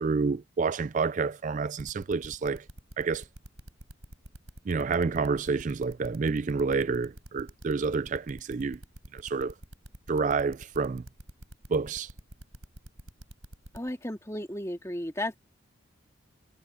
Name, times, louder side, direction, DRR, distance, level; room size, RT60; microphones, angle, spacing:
voice 1, 0.0-2.7 3.0-3.3 4.7-8.8 9.1-9.5 10.1-11.0 11.7-12.1, right 4 dB, 40° right, 0.3 m, -29 dB
sound 1, 1.8-13.9, right 1 dB, 90° right, 7.2 m, -46 dB
voice 2, 13.7-15.4, left 1 dB, 15° left, 2.2 m, -34 dB
head